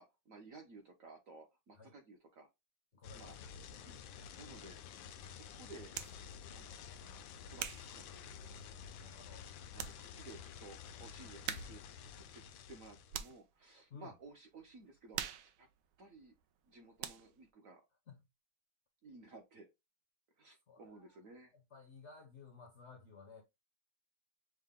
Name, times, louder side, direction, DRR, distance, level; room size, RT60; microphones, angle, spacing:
voice 1, 0.0-2.5 3.1-3.4 3.8-4.8 5.3-6.0 6.5-7.7 7.9-8.4 9.7-11.8 12.2-12.4 12.7-15.7 16.0-16.4 16.6-17.8 19.0-19.7 20.4-21.5, right 3 dB, 55° right, 1.0 m, -56 dB
voice 2, 2.9-3.5 8.9-9.5 13.9-14.1 18.1-18.3 20.7-21.1 21.5-23.4, left 5 dB, 55° left, 0.7 m, -56 dB
sound 1, 3.0-13.3, left 7 dB, 75° left, 1.3 m, -51 dB
sound 2, 5.9-6.2 6.9-8.9 9.4-9.5 9.7-10.0 10.3-10.4 11.4-11.9 12.2-13.5 14.0-14.3 14.6-16.7 17.0-17.5, right 10 dB, 85° right, 1.4 m, -45 dB
6.4 x 2.2 x 3.6 m
omnidirectional pair, 2.2 m